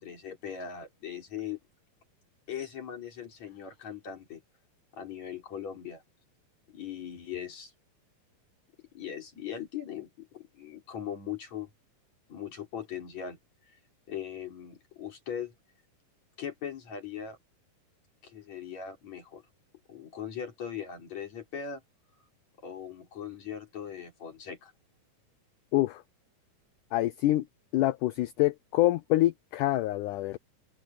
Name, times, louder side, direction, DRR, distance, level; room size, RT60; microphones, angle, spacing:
voice 1, 0.0-1.6 2.5-4.4 4.9-6.0 6.7-7.7 8.9-11.7 12.3-13.4 13.7-13.8 14.1-15.5 16.4-17.4 18.2-19.4 19.9-21.8 22.6-24.7, left 8 dB, 50° left, 4.8 m, -39 dB
voice 2, 26.9-27.4 27.7-30.4, left 16 dB, 85° left, 1.8 m, -26 dB
open air
omnidirectional pair, 4.3 m